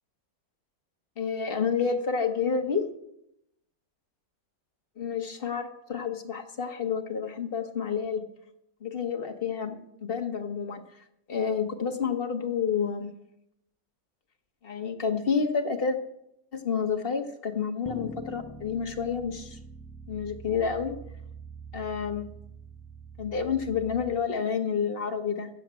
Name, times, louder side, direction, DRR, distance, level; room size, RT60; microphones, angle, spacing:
voice 1, 1.2-2.8 5.0-8.2 8.8-13.1 14.6-16.0 16.5-19.6 20.1-20.9 21.7-22.3 23.2-25.5, left 6 dB, 35° left, 4 dB, 1.4 m, -29 dB
sound 1, 17.8-24.1, right 3 dB, 5° left, 0.5 m, -44 dB
12.5 x 7.6 x 8.8 m, 0.79 s
omnidirectional pair, 1.9 m